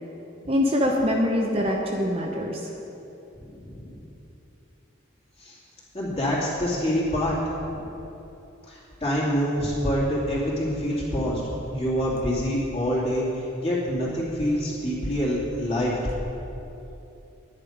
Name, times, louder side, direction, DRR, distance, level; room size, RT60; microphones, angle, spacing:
voice 1, 0.5-2.6, left 1 dB, 30° right, 0 dB, 0.7 m, -24 dB
voice 2, 3.4-4.0 5.4-5.6 5.9-7.4 7.7-7.9 8.7-11.4 11.7-15.9, equal, 30° left, -7 dB, 2.7 m, -26 dB
10.5 x 9.9 x 5.0 m, 2.9 s
head